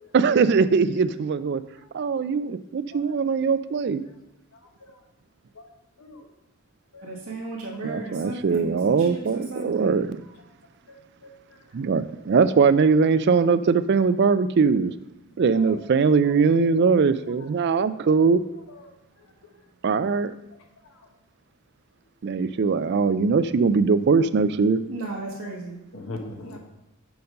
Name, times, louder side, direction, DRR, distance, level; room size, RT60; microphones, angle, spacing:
voice 1, 0.1-1.6 1.9-4.0 7.8-10.2 11.7-14.9 15.4-18.4 19.8-20.3 22.2-24.8, right 5 dB, 50° right, 13 dB, 0.4 m, -21 dB
voice 2, 7.0-10.1 24.9-25.8, right 2 dB, 80° right, -5 dB, 1.4 m, -35 dB
voice 3, 7.8-8.3 11.2-11.3 15.5-15.7 25.9-26.6, left 2 dB, 80° left, 3 dB, 1.3 m, -39 dB
6.9 x 5.2 x 5.3 m, 0.89 s
head